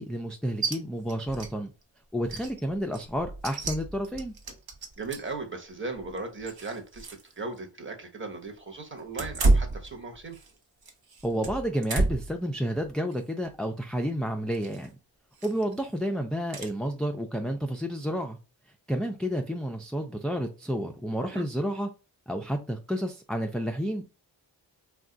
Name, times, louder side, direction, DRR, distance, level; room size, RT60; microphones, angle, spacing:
voice 1, 0.0-1.7 2.1-4.3 11.2-14.9 15.4-18.4 18.9-21.9 22.3-24.0, equal, ahead, 0.3 m, -30 dB
sound 1, 0.6-0.8 1.1-1.5 1.8-1.9 2.2-5.4 5.9-7.3 7.6-7.7 9.1-10.5 10.8-12.4 12.8-13.1 14.5-14.9 15.4-15.7 16.5-16.7, right 2 dB, 55° right, 0.9 m, -30 dB
voice 2, 5.0-7.1 7.4-10.4 21.2-21.5, right 3 dB, 25° right, 1.0 m, -37 dB
2.4 x 2.3 x 3.7 m
cardioid pair, 45°, 46 cm